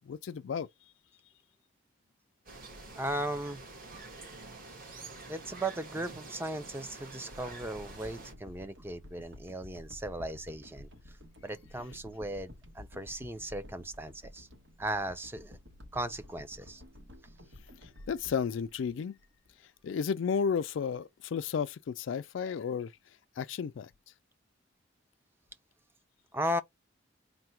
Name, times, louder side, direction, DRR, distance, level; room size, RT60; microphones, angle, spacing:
voice 1, 0.1-0.7 18.1-19.2 19.8-22.9 23.4-23.9, left 6 dB, 75° left, 0.3 m, -32 dB
sound 1, 2.5-8.3, right 3 dB, 50° right, 1.5 m, -47 dB
voice 2, 3.0-3.6 4.9-10.9 11.4-14.5 14.8-15.6 15.9-16.8 26.3-26.6, right 1 dB, 10° right, 0.4 m, -37 dB
sound 2, 7.3-19.5 20.1-20.2, left 1 dB, 80° right, 1.2 m, -52 dB
3.8 x 2.2 x 4.5 m
head